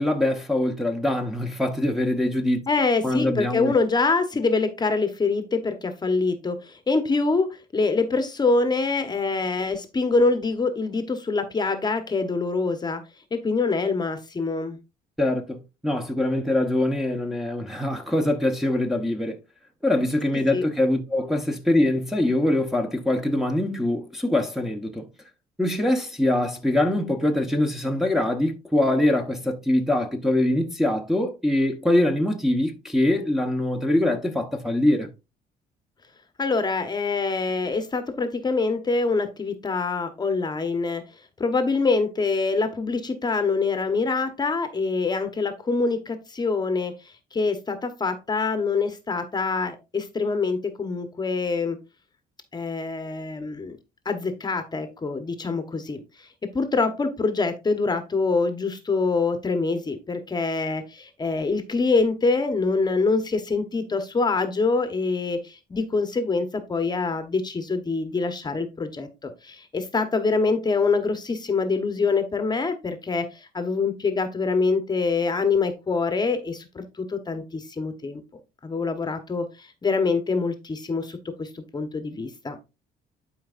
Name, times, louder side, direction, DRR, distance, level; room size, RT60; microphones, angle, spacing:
voice 1, 0.0-2.6 3.0-3.7 15.2-19.4 19.8-25.1 25.6-35.1, left 1 dB, ahead, 1.1 m, -23 dB
voice 2, 2.7-13.0 13.3-14.8 20.5-20.6 36.4-41.0 41.4-46.9 47.3-51.8 52.5-53.8 54.0-56.3 56.5-78.2 78.6-82.6, left 4 dB, 25° left, 1.1 m, -25 dB
11.5 x 4.7 x 2.5 m
cardioid pair, 110°, 17 cm